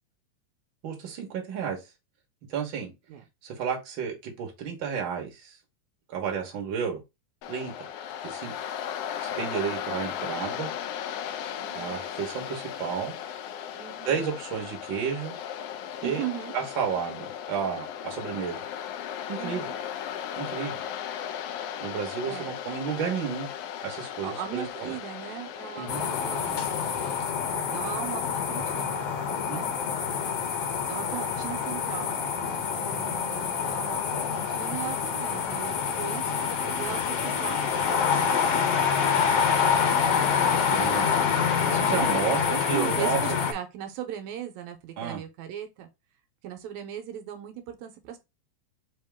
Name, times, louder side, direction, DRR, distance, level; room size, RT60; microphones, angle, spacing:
voice 1, 0.8-1.8 2.5-2.9 3.4-5.6 6.1-7.0 7.5-7.9 8.2-8.5 9.2-10.7 11.7-13.1 14.1-15.4 16.0-16.2 16.5-18.6 19.3-19.7 20.4-20.8 21.8-23.5 23.8-24.9 25.8-26.0 29.5-29.7 38.9-39.2 40.3-41.2 41.4-42.4 42.7-43.2 45.0-45.2, right 7 dB, 55° right, 1.6 m, -32 dB
Waves surf, 7.4-27.2, left 9 dB, 90° left, 1.3 m, -36 dB
voice 2, 11.6-12.0 13.7-14.2 16.0-16.6 19.4-19.8 22.2-22.5 24.2-26.8 27.5-29.1 29.5-29.7 30.9-37.8 41.7-45.9 46.4-48.2, right 10 dB, 85° right, 2.0 m, -38 dB
sound 1, 25.9-43.5, left 7 dB, 70° left, 1.6 m, -26 dB
4.7 x 2.8 x 3.4 m
omnidirectional pair, 3.3 m